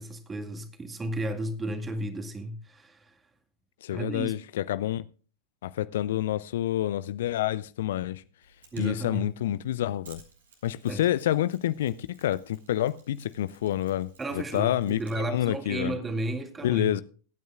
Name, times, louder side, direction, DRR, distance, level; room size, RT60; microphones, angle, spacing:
voice 1, 0.0-3.2 3.9-4.3 8.7-9.3 10.9-11.1 14.2-17.0, right 1 dB, 15° right, 2.0 m, -33 dB
voice 2, 3.8-5.0 5.6-8.2 8.8-10.2 10.6-15.9 16.6-17.0, left 12 dB, 60° left, 0.5 m, -28 dB
Mechanisms, 8.4-15.6, right 4 dB, 70° right, 4.0 m, -58 dB
23.0 x 9.3 x 2.4 m
figure-of-eight pair, 95°, 0 cm